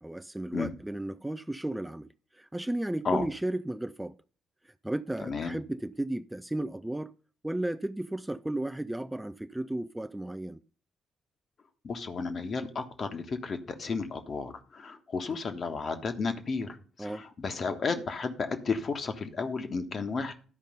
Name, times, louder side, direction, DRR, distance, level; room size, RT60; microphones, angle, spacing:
voice 1, 0.0-4.2 4.6-7.1 7.4-10.6 17.0-17.3, right 1 dB, 10° right, 0.4 m, -34 dB
voice 2, 5.2-5.6 11.8-20.3, left 4 dB, 45° left, 1.4 m, -33 dB
12.5 x 5.2 x 5.3 m
figure-of-eight pair, 40°, 0 cm